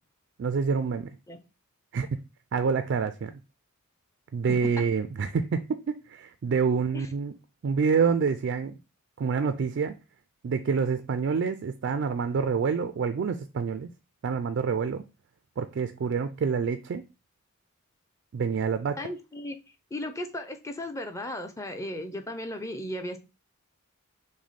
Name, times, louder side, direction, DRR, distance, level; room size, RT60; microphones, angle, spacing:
voice 1, 0.4-1.1 1.9-2.1 2.5-3.3 4.3-7.3 7.6-8.8 9.2-9.9 10.4-13.9 14.2-15.0 15.6-17.0 18.3-19.0, right 5 dB, 55° right, 0.3 m, -27 dB
voice 2, 19.0-19.6 19.9-23.2, left 1 dB, 15° left, 0.5 m, -36 dB
5.9 x 2.1 x 4.1 m
head